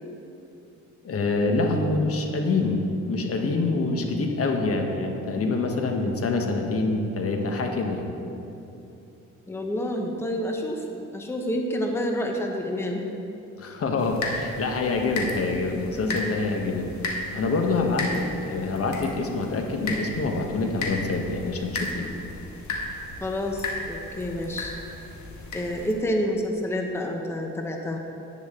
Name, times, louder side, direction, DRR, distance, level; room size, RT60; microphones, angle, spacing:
voice 1, 1.0-8.1 13.6-16.9 17.3-22.1, left 3 dB, 50° left, 3 dB, 1.2 m, -26 dB
voice 2, 9.5-13.0 23.2-24.7 25.5-28.0, equal, 10° left, 2 dB, 0.9 m, -28 dB
sound 1, 14.0-25.9, left 2 dB, 70° left, 1.7 m, -35 dB
11.0 x 9.6 x 3.7 m, 2.8 s
cardioid pair, 90°, 30 cm